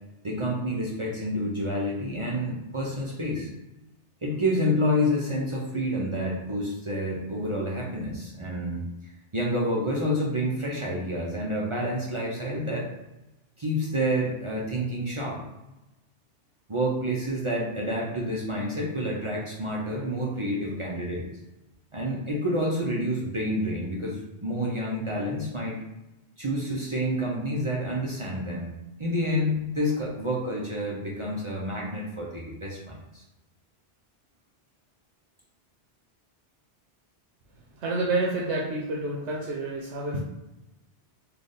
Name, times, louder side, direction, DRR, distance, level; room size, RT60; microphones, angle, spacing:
voice 1, 0.2-3.5 4.2-12.9 13.6-15.4 16.7-21.3 21.9-25.8 26.4-28.7 29.0-33.2, equal, 35° right, -4 dB, 0.6 m, -29 dB
voice 2, 37.8-40.2, right 2 dB, 85° right, -3 dB, 0.9 m, -28 dB
3.4 x 2.4 x 4.0 m, 0.96 s
omnidirectional pair, 1.1 m